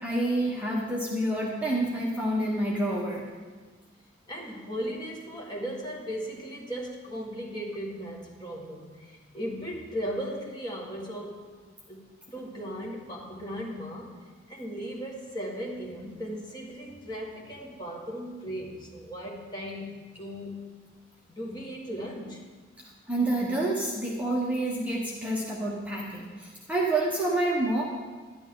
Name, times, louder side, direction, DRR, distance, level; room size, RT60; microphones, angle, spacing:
voice 1, 0.0-3.2 23.1-27.8, right 1 dB, 10° right, -4 dB, 1.0 m, -28 dB
voice 2, 4.3-11.5 11.9-12.0 12.3-14.2 14.5-20.6 21.3-22.4, equal, 20° left, -3 dB, 1.6 m, -37 dB
11.0 x 11.0 x 3.8 m, 1.4 s
head